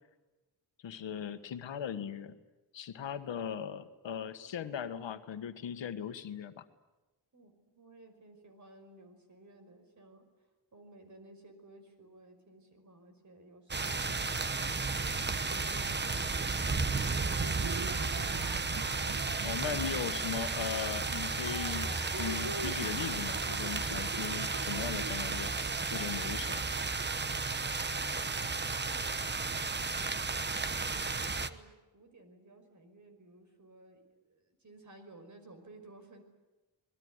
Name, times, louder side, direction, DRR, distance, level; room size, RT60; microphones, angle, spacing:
voice 1, 0.8-2.4 2.7-6.6 19.4-25.5 25.9-26.6, left 8 dB, 90° left, 9 dB, 1.7 m, -38 dB
voice 2, 7.3-10.3 10.7-18.2 27.9-36.2, right 2 dB, 40° right, 7 dB, 5.5 m, -55 dB
sound 1, 13.7-31.5, right 4 dB, 25° right, 1.0 m, -33 dB
Cheering, 17.3-29.3, right 4 dB, 55° right, 1.8 m, -46 dB
26.5 x 20.5 x 9.7 m, 1.1 s
wide cardioid pair, 130°, 43 cm